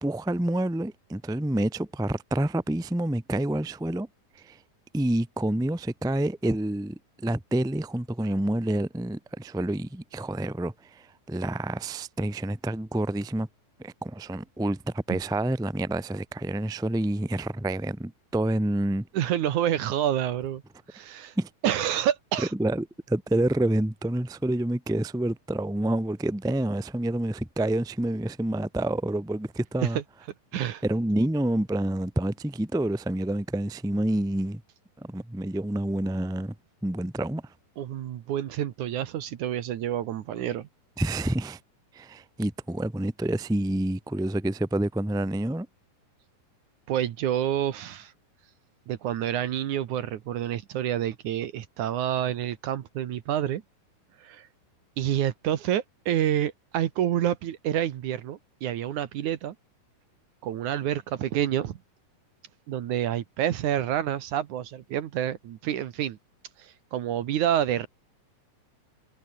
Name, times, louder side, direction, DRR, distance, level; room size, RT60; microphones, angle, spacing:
voice 1, 0.0-4.1 4.3-4.6 4.9-13.5 13.8-19.1 21.4-21.5 22.6-30.0 30.8-34.6 35.0-36.5 36.8-37.5 41.0-41.6 41.9-45.7, right 1 dB, ahead, 1.1 m, -28 dB
voice 2, 19.1-20.6 20.9-21.3 21.6-22.5 29.8-30.0 30.5-30.8 37.8-40.7 46.9-48.1 48.9-53.6 54.2-54.5 55.0-59.6 60.4-61.8 62.7-66.2 66.6-67.9, right 11 dB, 65° right, 2.5 m, -28 dB
omnidirectional pair, 4.0 m